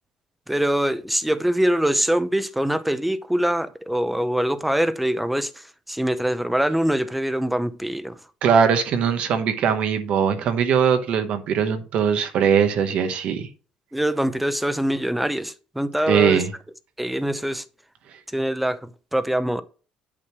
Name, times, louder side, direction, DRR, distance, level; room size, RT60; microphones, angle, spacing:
voice 1, 0.5-8.2 13.9-16.4 17.0-17.6 18.3-19.6, right 1 dB, 5° right, 0.6 m, -23 dB
voice 2, 8.4-13.5 16.1-16.5, right 7 dB, 65° right, 1.1 m, -20 dB
8.7 x 3.1 x 6.0 m
cardioid pair, 115°, 2 cm